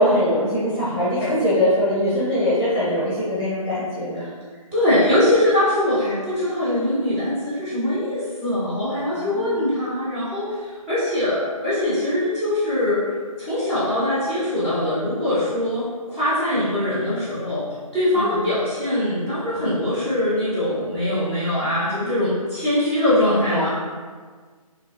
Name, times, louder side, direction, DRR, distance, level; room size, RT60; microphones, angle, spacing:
voice 1, 0.0-4.3 9.1-9.7 18.1-18.6 23.5-23.7, equal, 20° left, -11 dB, 0.8 m, -22 dB
voice 2, 4.7-13.0 13.4-17.6 17.9-23.7, left 1 dB, 20° right, -13 dB, 1.0 m, -22 dB
3.7 x 2.8 x 2.5 m, 1.5 s
figure-of-eight pair, 150°, 19 cm